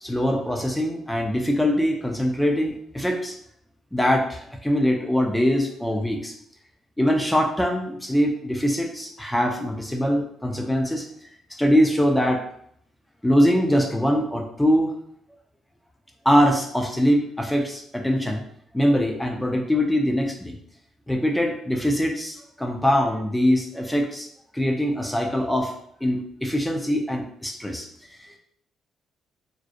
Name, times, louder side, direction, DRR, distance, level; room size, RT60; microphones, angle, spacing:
voice 1, 0.0-3.4 3.9-6.3 7.0-11.1 11.6-12.4 13.2-14.9 16.3-18.4 18.7-20.6 21.1-24.3 24.5-25.7 26.0-28.2, equal, 5° left, 2 dB, 0.3 m, -22 dB
2.5 x 2.0 x 2.4 m, 0.66 s
cardioid pair, 90°, 0 cm